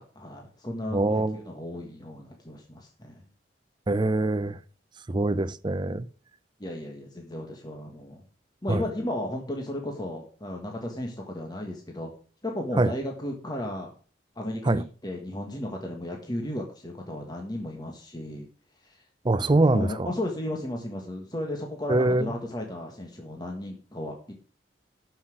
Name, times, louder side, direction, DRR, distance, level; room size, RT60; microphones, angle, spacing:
voice 1, 0.0-3.2 6.6-8.2 8.6-12.1 12.4-13.9 14.3-18.5 18.8-19.0 19.7-24.3, left 1 dB, 25° left, 1.5 m, -34 dB
voice 2, 0.9-1.5 3.9-4.6 5.1-6.1 8.7-8.8 12.8-12.9 14.6-14.8 19.2-20.1 21.9-22.3, right 2 dB, 25° right, 0.5 m, -24 dB
12.0 x 5.8 x 6.4 m
head